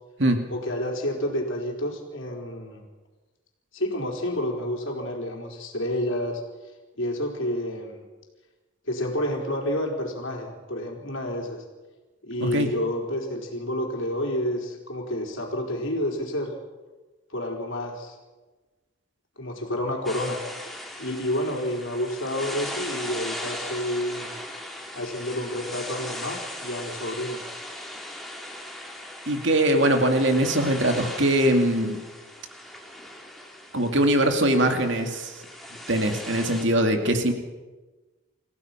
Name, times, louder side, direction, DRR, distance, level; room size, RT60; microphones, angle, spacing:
voice 1, 0.5-2.8 3.7-6.4 7.0-8.0 8.9-11.6 12.2-16.5 17.3-18.2 19.4-20.4 21.0-24.3 24.9-27.4, left 1 dB, 70° left, 1 dB, 4.0 m, -29 dB
sound 1, 20.0-36.6, left 1 dB, ahead, 2.6 m, -38 dB
voice 2, 29.3-32.0 33.7-35.4 35.9-37.3, right 1 dB, 60° right, 5 dB, 2.4 m, -22 dB
28.0 x 16.0 x 5.9 m, 1.2 s
head